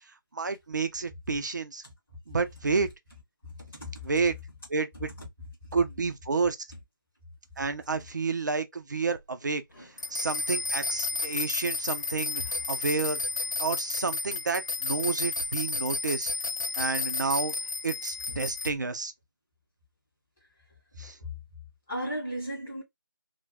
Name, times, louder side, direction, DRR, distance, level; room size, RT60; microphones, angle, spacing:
voice 1, 0.3-1.8 2.3-2.9 4.0-4.4 4.7-5.1 5.7-6.6 7.6-9.6 10.1-12.4 12.7-13.2 13.6-16.3 16.8-17.5 17.8-19.1 21.0-21.2, right 4 dB, 55° right, 0.5 m, -30 dB
voice 2, 3.4-4.1 5.1-5.3 5.6-5.8 9.7-9.9 12.4-12.5 18.3-18.4 20.9-21.3 21.9-22.8, equal, 5° left, 0.4 m, -37 dB
sound 1, 10.0-18.7, left 3 dB, 55° left, 0.7 m, -32 dB
2.4 x 2.2 x 3.4 m
figure-of-eight pair, 170°, 12 cm